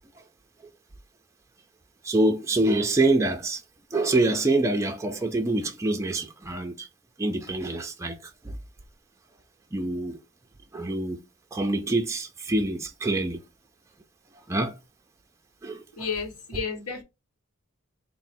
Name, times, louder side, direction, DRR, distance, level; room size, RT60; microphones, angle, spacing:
voice 1, 2.0-3.6 3.9-6.9 7.2-8.5 9.7-10.2 10.7-11.2 11.5-13.4 14.5-14.8 15.6-15.8, right 2 dB, 15° right, 0.4 m, -25 dB
voice 2, 15.9-17.0, left 5 dB, 80° left, 1.1 m, -32 dB
3.9 x 2.0 x 4.2 m
head